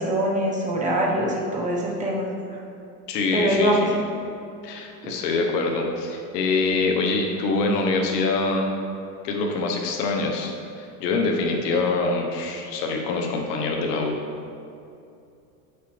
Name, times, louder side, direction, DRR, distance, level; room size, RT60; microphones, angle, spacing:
voice 1, 0.0-2.6 3.3-3.9 5.0-5.1, equal, 15° right, -3 dB, 1.1 m, -24 dB
voice 2, 3.1-4.0 4.6-8.7 9.2-14.2, left 3 dB, 80° left, 1 dB, 1.2 m, -25 dB
8.2 x 6.6 x 3.3 m, 2.6 s
supercardioid pair, 140°, 47 cm